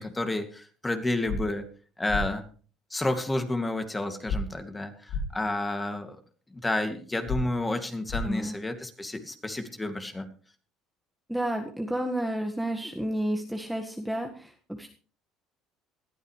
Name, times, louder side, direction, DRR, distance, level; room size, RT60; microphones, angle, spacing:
voice 1, 0.0-1.6 2.0-2.4 2.9-6.2 6.5-10.3, left 2 dB, 15° left, 7 dB, 2.4 m, -30 dB
sound 1, 1.3-1.4 2.1-2.2 4.3-4.4 5.1-5.2 7.3-7.4 8.1-8.2, left 4 dB, 70° left, 2.5 m, -29 dB
voice 2, 8.2-8.5 11.3-14.9, right 1 dB, 5° right, 3 dB, 1.7 m, -31 dB
20.0 x 12.0 x 3.3 m, 0.41 s
supercardioid pair, 80°, 0 cm